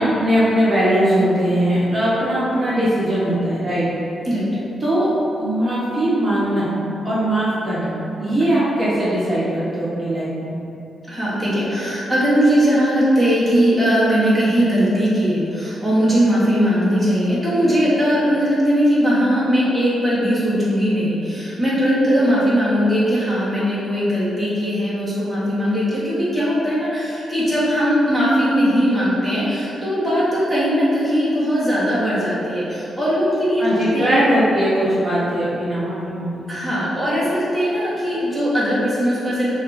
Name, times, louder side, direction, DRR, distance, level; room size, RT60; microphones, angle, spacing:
voice 1, 0.0-3.9 4.8-5.1 5.4-6.7 7.0-10.5 33.6-36.4, right 1 dB, 30° right, -10 dB, 0.9 m, -20 dB
voice 2, 11.1-34.3 36.5-39.6, equal, 5° left, -10 dB, 1.1 m, -19 dB
6.1 x 2.4 x 2.6 m, 2.8 s
wide cardioid pair, 145°, 0 cm